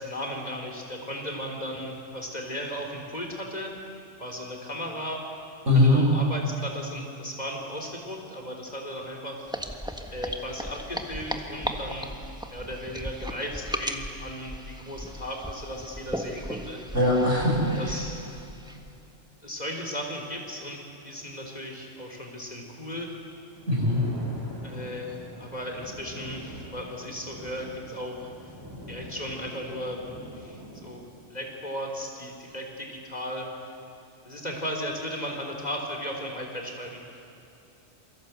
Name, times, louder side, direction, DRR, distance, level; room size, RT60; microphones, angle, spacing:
voice 1, 0.0-3.8 4.2-5.2 5.7-9.5 10.1-12.1 12.5-16.8 17.8-18.2 19.4-23.1 24.6-28.3 28.9-30.0 30.3-31.0 31.3-33.5 34.2-37.0, equal, 35° left, 1 dB, 4.0 m, -36 dB
voice 2, 5.7-6.0 16.9-18.0 23.7-24.0, left 1 dB, 80° right, -2 dB, 7.0 m, -21 dB
sound 1, 9.5-19.0, equal, 5° right, 1.5 m, -37 dB
Thunder, 23.4-31.1, equal, 20° right, 6.4 m, -44 dB
28.0 x 24.0 x 8.3 m, 2.7 s
omnidirectional pair, 1.2 m